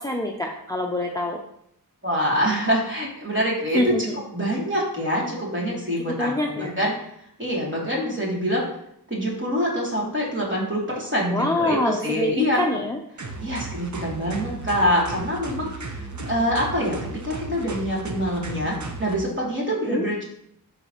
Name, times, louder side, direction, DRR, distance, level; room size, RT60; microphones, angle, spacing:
voice 1, 0.0-1.4 3.7-4.2 6.1-6.7 11.3-13.0 19.9-20.1, left 1 dB, 10° left, 1 dB, 0.7 m, -25 dB
voice 2, 2.0-3.9 4.3-6.9 7.4-8.6 9.1-12.6 13.4-20.2, equal, 30° right, -5 dB, 2.9 m, -25 dB
sound 1, 13.2-19.2, right 3 dB, 50° right, 0.9 m, -35 dB
12.0 x 4.1 x 3.1 m, 0.72 s
wide cardioid pair, 75°, 37 cm